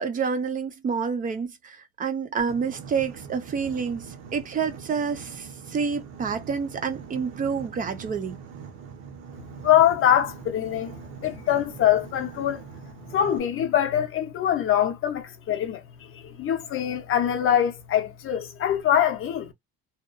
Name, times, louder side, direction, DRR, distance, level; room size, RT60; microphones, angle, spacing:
voice 1, 0.0-4.1 4.3-8.4, right 6 dB, 25° right, 0.4 m, -28 dB
Boat Water vehicle, 2.4-13.4, right 6 dB, 80° right, 0.8 m, -42 dB
voice 2, 9.6-10.9 11.2-12.6 13.1-19.5, left 10 dB, 35° left, 0.5 m, -23 dB
2.8 x 2.2 x 2.4 m
cardioid pair, 160°, 37 cm